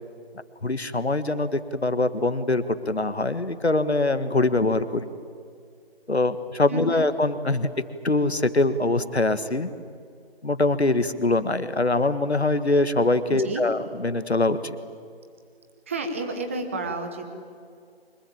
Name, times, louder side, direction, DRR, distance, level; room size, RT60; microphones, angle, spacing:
voice 1, 0.6-5.1 6.1-7.7 8.0-9.7 10.4-14.8, left 2 dB, 80° left, 12 dB, 1.7 m, -23 dB
voice 2, 6.7-7.0 13.3-13.6 15.9-17.4, right 3 dB, 10° right, 6 dB, 1.3 m, -31 dB
24.5 x 22.5 x 8.7 m, 2.2 s
figure-of-eight pair, 160°, 32 cm